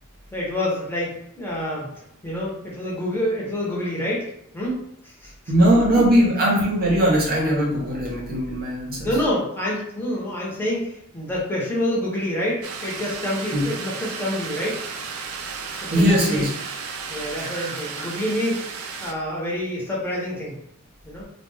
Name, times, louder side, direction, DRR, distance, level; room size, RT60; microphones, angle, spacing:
voice 1, 0.3-1.9 2.2-4.3 4.5-4.8 5.0-5.3 6.0-6.1 9.0-14.8 15.8-16.4 17.1-18.6 19.0-20.6 21.0-21.2, left 1 dB, 10° left, -6 dB, 0.8 m, -27 dB
voice 2, 5.5-9.1 13.5-13.6 15.9-16.5 17.4-17.5 18.0-18.1, equal, 45° right, -2 dB, 0.8 m, -20 dB
sound 1, 12.6-19.1, right 5 dB, 70° right, 0.3 m, -34 dB
2.4 x 2.2 x 3.2 m, 0.72 s
head